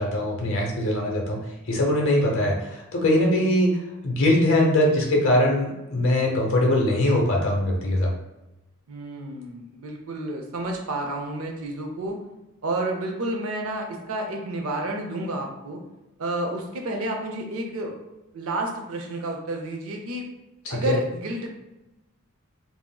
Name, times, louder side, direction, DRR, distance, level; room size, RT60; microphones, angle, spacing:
voice 1, 0.0-8.1 20.6-21.0, left 1 dB, 60° left, -1 dB, 0.7 m, -22 dB
voice 2, 8.9-12.2 12.6-15.8 16.2-18.0 18.3-20.3 20.7-21.6, right 2 dB, 70° right, 2 dB, 0.5 m, -30 dB
3.6 x 2.0 x 2.3 m, 0.97 s
head